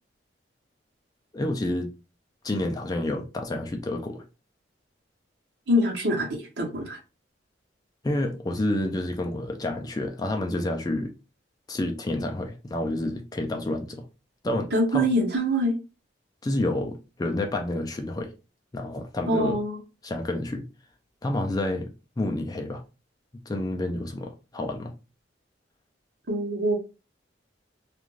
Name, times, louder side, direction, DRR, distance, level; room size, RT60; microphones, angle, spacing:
voice 1, 1.3-1.9 2.4-4.2 8.0-11.1 11.7-14.0 14.4-15.1 16.4-18.3 18.7-19.6 20.0-20.6 21.2-21.9 22.2-22.8 23.5-24.9, left 1 dB, 20° left, 0.3 m, -29 dB
voice 2, 5.7-7.0 14.7-15.7 19.3-19.8 26.3-26.8, equal, 60° right, 0.9 m, -24 dB
2.4 x 2.3 x 3.1 m
head